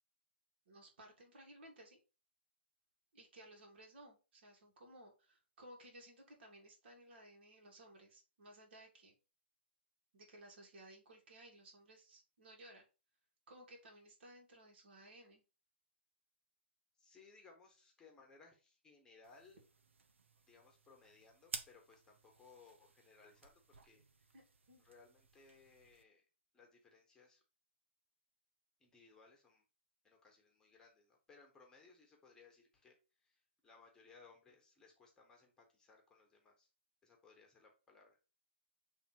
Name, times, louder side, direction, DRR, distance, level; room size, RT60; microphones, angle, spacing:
voice 1, 0.7-2.0 3.1-9.1 10.1-12.9 13.5-15.4 24.3-24.4 24.7-24.8, right 1 dB, 60° right, 1 dB, 3.0 m, -59 dB
voice 2, 16.9-19.6 20.5-24.4 24.8-26.2 26.5-27.4 28.8-29.6 30.0-36.7 37.0-38.2, left 4 dB, 10° left, 0 dB, 1.3 m, -64 dB
sound 1, 19.2-26.0, right 4 dB, 85° right, 1.0 m, -54 dB
7.0 x 3.5 x 4.6 m, 0.33 s
hypercardioid pair, 145°, 6 cm